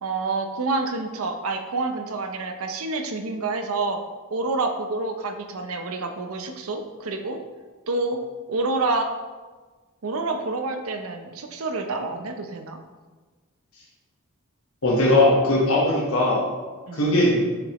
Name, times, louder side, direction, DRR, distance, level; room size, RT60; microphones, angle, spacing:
voice 1, 0.0-4.0 4.3-7.4 7.9-8.2 8.5-9.1 10.0-12.8 16.9-17.0, right 3 dB, 85° right, 6 dB, 0.7 m, -28 dB
voice 2, 14.8-16.4 17.0-17.4, left 1 dB, 80° left, -4 dB, 1.1 m, -19 dB
6.8 x 5.2 x 3.0 m, 1.3 s
head